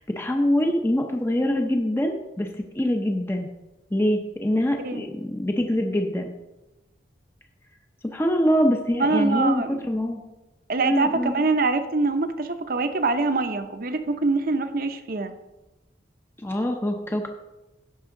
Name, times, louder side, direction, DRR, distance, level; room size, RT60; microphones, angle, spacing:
voice 1, 0.0-2.5 2.7-3.5 3.9-6.3 8.0-10.2 10.8-11.4 16.4-17.3, equal, 15° left, 3 dB, 0.6 m, -24 dB
voice 2, 9.0-9.8 10.7-15.3, right 3 dB, 55° right, 9 dB, 0.8 m, -24 dB
16.0 x 5.5 x 3.8 m, 1.0 s
head